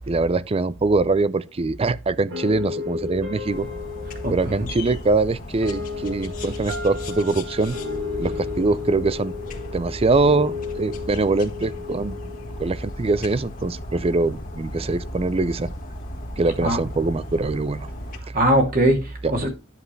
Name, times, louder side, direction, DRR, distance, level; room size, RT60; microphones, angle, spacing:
voice 1, 0.1-3.7 4.3-7.8 8.2-9.3 9.7-15.7 16.4-17.9, right 3 dB, 30° right, 0.4 m, -23 dB
sound 1, 2.3-13.4, left 5 dB, 75° right, 2.4 m, -34 dB
sound 2, 3.5-18.2, left 2 dB, 45° left, 1.7 m, -37 dB
voice 2, 4.2-4.5 16.6-16.8 18.3-19.6, right 1 dB, 45° right, 2.8 m, -20 dB
10.5 x 7.4 x 3.2 m
head